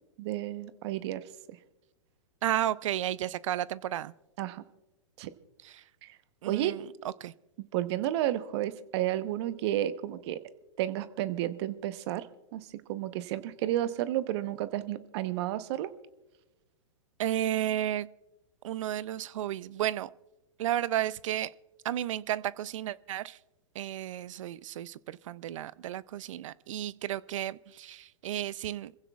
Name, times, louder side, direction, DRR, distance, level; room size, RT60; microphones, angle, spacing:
voice 1, 0.2-1.6 4.4-4.6 5.2-5.3 6.5-6.8 7.7-10.4 10.8-12.3 12.5-15.9, right 13 dB, 55° right, 0.9 m, -32 dB
voice 2, 2.4-4.1 5.6-5.8 6.4-7.3 17.2-18.1 18.6-20.1 20.6-21.5 21.8-23.4 23.8-28.9, right 12 dB, 70° right, 0.5 m, -33 dB
26.5 x 15.5 x 2.4 m
hypercardioid pair, 120°, 17 cm